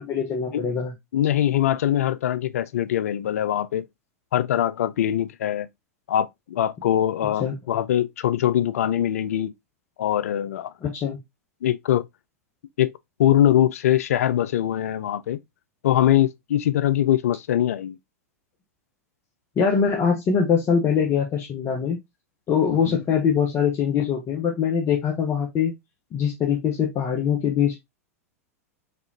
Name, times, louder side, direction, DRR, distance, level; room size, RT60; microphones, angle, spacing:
voice 1, 0.0-0.9 7.4-7.5 10.8-11.2 19.6-22.0 22.5-25.7 26.1-27.8, left 7 dB, 35° left, 1.1 m, -23 dB
voice 2, 1.1-3.9 4.3-5.7 6.1-9.5 10.0-10.7 11.6-12.1 12.8-12.9 13.2-15.4 15.8-17.9 22.7-23.0, left 11 dB, 70° left, 0.4 m, -22 dB
4.2 x 3.6 x 2.8 m
hypercardioid pair, 95°, 8 cm